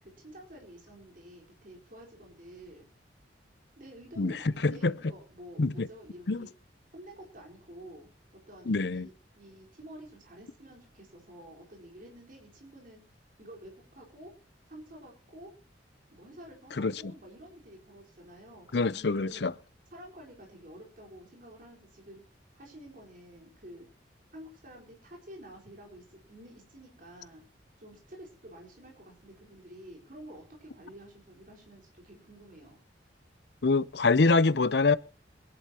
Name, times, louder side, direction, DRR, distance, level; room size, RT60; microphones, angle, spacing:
voice 1, 0.0-2.9 3.8-6.5 6.9-8.1 8.5-13.0 13.4-14.3 14.7-15.5 16.1-19.5 19.9-22.2 22.5-23.9 24.3-27.4 27.8-32.8, right 1 dB, 45° right, 4.2 m, -50 dB
voice 2, 4.2-4.9 5.6-5.9 6.3-6.5 8.7-9.1 16.8-16.9 18.7-19.5 33.6-35.0, left 3 dB, 65° left, 0.7 m, -25 dB
24.5 x 11.0 x 2.9 m
head